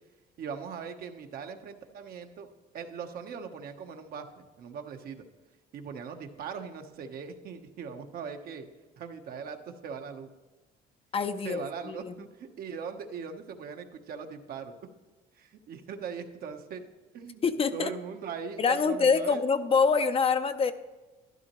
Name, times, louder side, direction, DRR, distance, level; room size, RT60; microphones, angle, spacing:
voice 1, 0.4-2.5 2.7-5.2 5.7-8.7 9.0-10.3 11.4-14.8 15.3-16.8 17.1-17.4 17.7-19.4, right 6 dB, 60° right, 6 dB, 1.1 m, -40 dB
voice 2, 11.1-12.1 17.4-17.9 18.6-20.7, left 5 dB, 35° left, 10 dB, 0.6 m, -25 dB
12.0 x 11.5 x 3.0 m, 1.2 s
cardioid pair, 110°, 17 cm